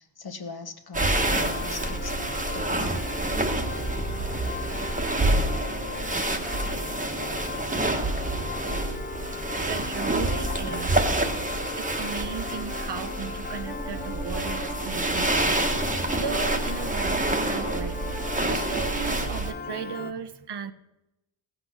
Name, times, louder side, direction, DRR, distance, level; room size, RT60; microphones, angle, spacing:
voice 1, 0.0-2.2 2.5-3.0, left 4 dB, 55° left, 1.3 m, -40 dB
sound 1, 0.9-19.5, right 2 dB, 15° right, 1.2 m, -28 dB
Piano, 1.1-20.1, left 5 dB, 20° left, 0.6 m, -38 dB
voice 2, 5.2-5.6 7.2-7.5 8.9-9.1 9.7-11.1 11.8-15.5 16.2-18.0 18.5-20.7, right 7 dB, 60° right, 0.8 m, -36 dB
Bowed string instrument, 13.6-19.3, right 1 dB, 5° left, 1.3 m, -40 dB
15.0 x 6.5 x 6.2 m
cardioid pair, 65°, 45 cm